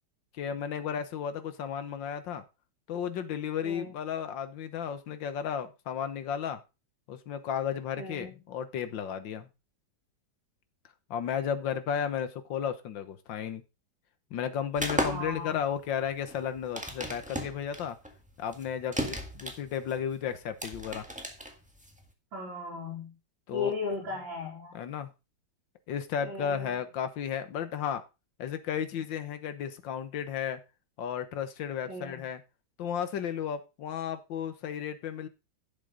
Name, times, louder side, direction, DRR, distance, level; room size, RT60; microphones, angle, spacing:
voice 1, 0.3-2.4 2.9-6.6 7.1-9.5 11.1-13.6 14.3-18.0 18.4-21.1 23.5-23.7 24.7-25.1 25.9-28.0 28.4-30.6 31.0-32.4 32.8-35.3, left 8 dB, 75° left, 11 dB, 1.8 m, -33 dB
voice 2, 3.6-3.9 8.0-8.4 15.0-15.6 22.3-23.1 23.5-24.8 26.2-26.8 31.9-32.2, left 3 dB, 80° right, -6 dB, 4.2 m, -36 dB
sound 1, 14.8-22.1, equal, 5° right, 1.6 m, -35 dB
11.5 x 7.6 x 3.8 m, 0.28 s
omnidirectional pair, 2.1 m